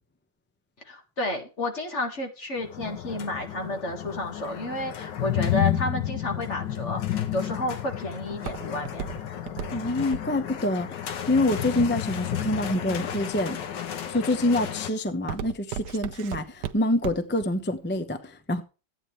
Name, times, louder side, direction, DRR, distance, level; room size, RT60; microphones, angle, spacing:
voice 1, 0.9-9.0, left 1 dB, 40° left, 2.1 m, -31 dB
sound 1, 2.6-14.9, left 11 dB, 80° left, 1.7 m, -31 dB
Walk footsteps, 7.2-12.3 12.9-13.4 13.9-14.2 14.6-17.5 17.8-17.9, right 9 dB, 65° right, 1.2 m, -36 dB
voice 2, 9.7-13.6 14.1-18.6, left 1 dB, 10° left, 0.5 m, -26 dB
14.0 x 9.1 x 3.3 m
omnidirectional pair, 1.9 m